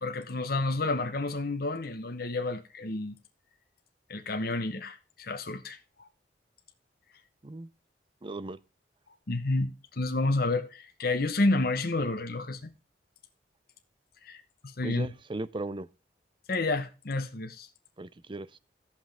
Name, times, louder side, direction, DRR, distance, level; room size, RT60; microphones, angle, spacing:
voice 1, 0.0-3.1 4.1-6.1 9.3-12.7 14.2-15.1 16.5-17.7, left 2 dB, 60° left, 1.0 m, -30 dB
voice 2, 8.2-8.6 14.8-15.9 18.0-18.6, right 2 dB, 30° right, 0.6 m, -37 dB
17.0 x 5.8 x 3.5 m
head